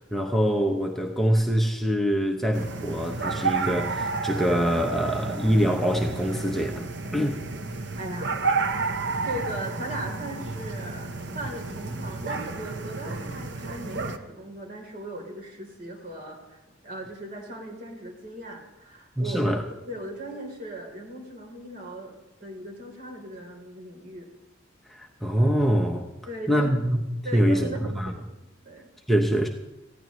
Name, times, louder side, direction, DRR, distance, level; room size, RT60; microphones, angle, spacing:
voice 1, 0.0-7.4 19.2-19.6 24.9-26.1 26.5-27.0 27.3-27.7 27.9-28.1 29.1-29.5, equal, ahead, 2 dB, 0.8 m, -24 dB
sound 1, 2.5-14.2, right 4 dB, 60° right, 1.0 m, -31 dB
voice 2, 8.0-8.3 9.2-24.3 26.3-26.7 27.2-28.9, right 1 dB, 45° right, 1 dB, 3.5 m, -38 dB
20.0 x 15.0 x 3.1 m, 1.0 s
head